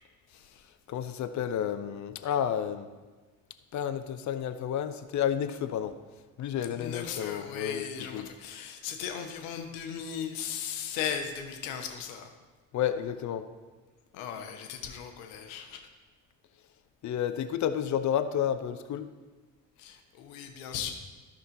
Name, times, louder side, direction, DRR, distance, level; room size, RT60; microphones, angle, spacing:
voice 1, 0.3-0.6 6.8-12.3 14.1-15.9 19.8-20.9, left 8 dB, 75° left, 5 dB, 1.0 m, -37 dB
voice 2, 0.9-2.9 3.7-5.9 6.4-7.8 8.1-8.3 12.7-13.4 17.0-19.1, left 9 dB, 45° left, 10 dB, 0.7 m, -31 dB
13.0 x 5.4 x 4.0 m, 1.3 s
hypercardioid pair, 50°, 40 cm